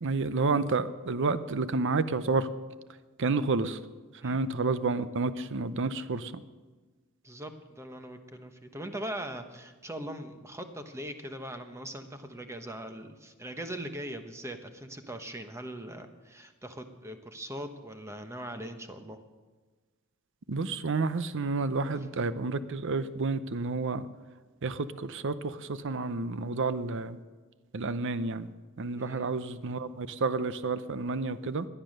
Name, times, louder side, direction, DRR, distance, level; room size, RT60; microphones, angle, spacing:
voice 1, 0.0-2.5 3.2-3.8 4.2-6.4 20.5-24.1 24.6-27.2 27.7-28.5 28.8-31.7, right 3 dB, 60° right, 14 dB, 0.7 m, -30 dB
voice 2, 7.2-19.2 28.9-29.3, right 1 dB, 15° right, 7 dB, 1.1 m, -41 dB
18.0 x 11.0 x 6.6 m, 1.3 s
head